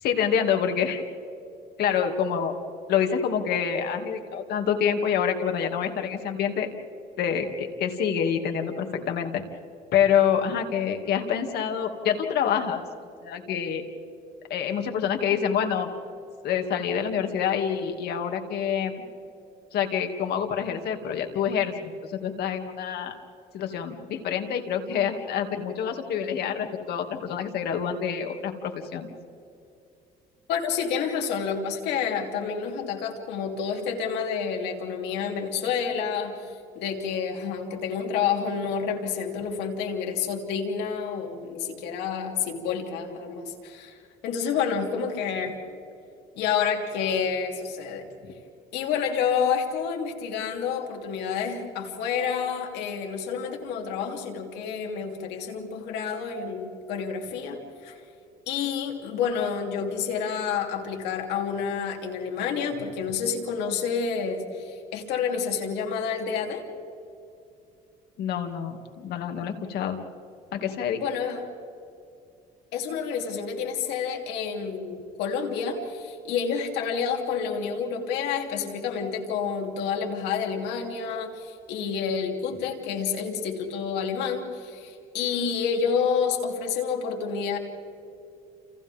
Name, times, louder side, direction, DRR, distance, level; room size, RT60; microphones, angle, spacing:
voice 1, 0.0-1.0 1.8-2.5 2.9-6.7 7.2-9.4 9.9-12.8 13.2-13.8 14.5-15.9 16.4-19.1 19.7-23.1 23.5-29.1 68.2-70.0 70.5-71.0, left 8 dB, 70° left, 5 dB, 2.5 m, -27 dB
voice 2, 30.5-45.6 46.3-48.0 48.7-58.0 58.5-66.6 71.0-71.4 72.7-87.6, left 6 dB, 90° left, 2 dB, 3.3 m, -29 dB
30.0 x 29.0 x 3.7 m, 2.7 s
cardioid pair, 110°, 17 cm